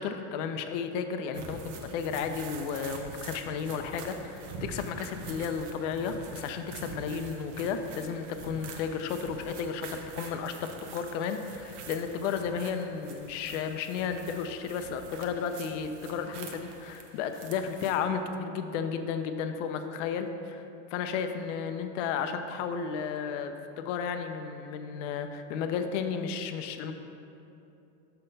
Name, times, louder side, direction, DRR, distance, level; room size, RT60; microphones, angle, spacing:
voice 1, 0.0-20.7 20.9-26.9, left 6 dB, 80° left, 7 dB, 0.6 m, -33 dB
sound 1, 1.3-18.0, right 4 dB, 80° right, 0.9 m, -45 dB
6.5 x 5.8 x 4.0 m, 2.8 s
supercardioid pair, 145°, 36 cm